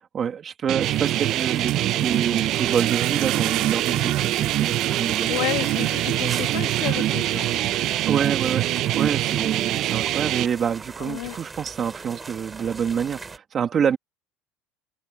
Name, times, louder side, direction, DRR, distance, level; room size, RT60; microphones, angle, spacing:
voice 1, 0.1-5.3 8.1-8.7 8.9-14.0, right 7 dB, 35° right, 1.8 m, -27 dB
sound 1, 0.7-10.5, right 14 dB, 55° right, 0.5 m, -24 dB
sound 2, 0.8-13.4, right 4 dB, 20° right, 7.0 m, -40 dB
sound 3, 1.7-7.5, right 20 dB, 75° right, 2.2 m, -35 dB
voice 2, 5.3-7.6 11.0-11.4, left 22 dB, 80° left, 1.9 m, -31 dB
cardioid pair, 130°, 0 cm